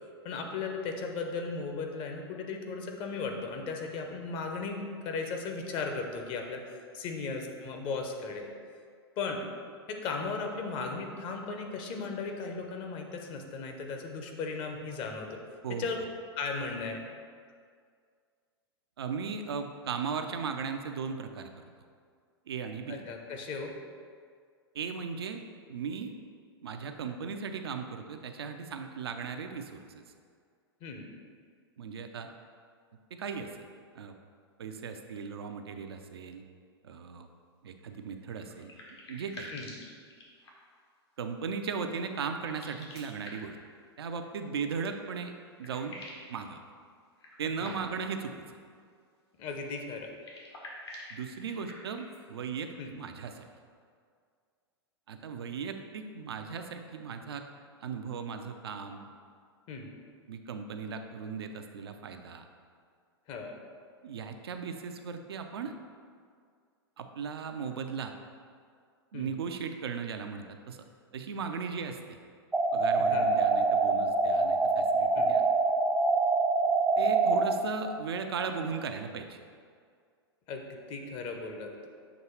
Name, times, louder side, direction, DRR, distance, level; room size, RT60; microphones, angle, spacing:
voice 1, 0.2-8.5 9.2-9.4 9.9-15.4 15.7-16.0 16.4-17.0 22.9-23.7 30.8-31.1 39.5-39.7 47.6-47.7 49.4-50.1 52.8-52.9 59.7-59.9 63.3-63.5 69.1-69.3 73.0-73.3 75.1-75.3 80.5-81.9, left 4 dB, 35° left, 3 dB, 0.8 m, -36 dB
voice 2, 19.0-21.6 22.5-23.0 24.7-25.4 25.7-26.1 26.6-30.0 31.8-32.3 33.1-33.6 33.9-34.1 34.6-36.4 36.8-37.3 37.6-38.7 39.1-39.5 41.2-43.6 44.0-45.3 45.6-46.0 46.3-46.6 47.4-48.3 51.1-53.4 55.1-57.4 57.8-59.1 60.3-62.4 64.0-65.7 67.0-68.1 69.1-70.8 71.1-72.2 72.7-75.4 77.0-79.4, right 5 dB, 65° right, 6 dB, 0.5 m, -37 dB
sound 1, 38.2-40.8 42.4-43.7 45.0-45.1 45.4-46.3 47.2-48.1 50.1-52.2, left 1 dB, 70° left, 1.4 m, -48 dB
sound 2, 72.5-77.5, right 3 dB, 5° right, 0.4 m, -25 dB
7.2 x 3.0 x 4.4 m, 2.1 s
figure-of-eight pair, 95°, 14 cm